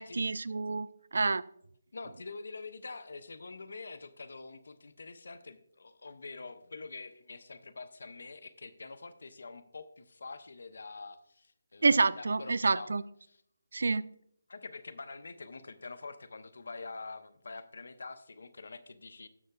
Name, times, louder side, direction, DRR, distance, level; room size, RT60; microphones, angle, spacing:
voice 1, 0.0-1.4 11.8-13.0 13.7-14.1, right 3 dB, 60° right, 0.3 m, -28 dB
voice 2, 1.9-12.9 13.2-13.4 14.5-19.3, left 3 dB, 60° left, 0.8 m, -46 dB
18.0 x 6.4 x 2.3 m
figure-of-eight pair, 150°, 0 cm